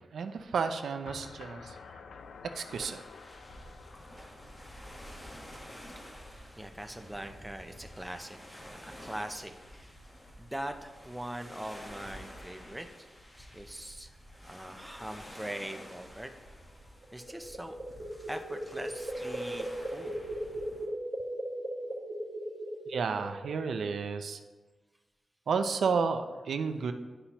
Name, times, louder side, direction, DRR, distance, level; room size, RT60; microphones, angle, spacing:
voice 1, 0.0-1.8 2.5-3.0 22.9-24.4 25.5-26.9, right 5 dB, 85° right, 8 dB, 0.5 m, -31 dB
sound 1, 1.1-6.0, left 5 dB, 85° left, 0.4 m, -51 dB
sound 2, 2.7-20.9, equal, 20° left, 1.1 m, -50 dB
voice 2, 5.0-5.4 6.6-9.9 10.4-12.9 13.4-16.3 17.1-17.7 18.3-20.2, right 1 dB, 5° right, 5 dB, 0.5 m, -42 dB
sound 3, 17.0-23.7, right 1 dB, 60° right, 1.2 m, -38 dB
10.0 x 5.5 x 2.9 m, 1.3 s
wide cardioid pair, 115°, 0 cm